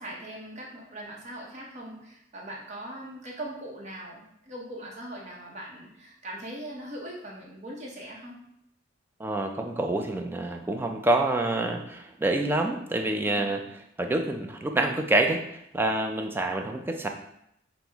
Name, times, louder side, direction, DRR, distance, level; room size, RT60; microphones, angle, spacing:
voice 1, 0.0-8.4 13.2-13.5, right 1 dB, 35° right, -3 dB, 0.8 m, -40 dB
voice 2, 9.2-13.6 14.0-15.4 15.7-17.1, right 2 dB, 10° right, 4 dB, 0.3 m, -27 dB
6.0 x 2.1 x 3.4 m, 0.79 s
head